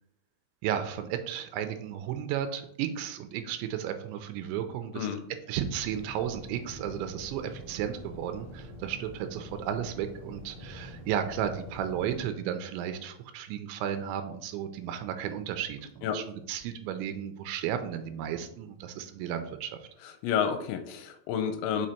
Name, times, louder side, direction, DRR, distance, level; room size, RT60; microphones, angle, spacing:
voice 1, 0.6-5.1 5.5-19.9, right 9 dB, 85° right, 8 dB, 3.0 m, -34 dB
sound 1, 5.6-12.2, left 1 dB, 35° left, 0.8 m, -45 dB
voice 2, 20.2-21.9, left 8 dB, 85° left, 8 dB, 2.9 m, -30 dB
6.2 x 5.1 x 4.3 m, 0.69 s
omnidirectional pair, 5.3 m